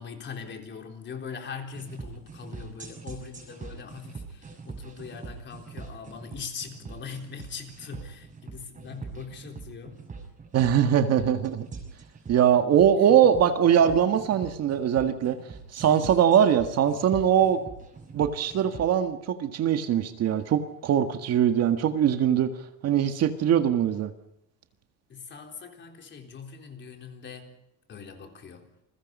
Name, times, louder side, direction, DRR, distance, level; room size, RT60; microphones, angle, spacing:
voice 1, 0.0-10.0 25.1-27.5 27.9-28.7, left 6 dB, 30° left, 3 dB, 4.0 m, -41 dB
sound 1, 1.7-18.9, right 4 dB, 20° right, 6.0 m, -43 dB
voice 2, 10.5-11.7 12.3-15.4 15.7-17.6 18.1-22.5 22.8-24.1, right 9 dB, 45° right, 7 dB, 1.8 m, -22 dB
29.0 x 22.0 x 5.5 m, 0.80 s
cardioid pair, 155°, 35 cm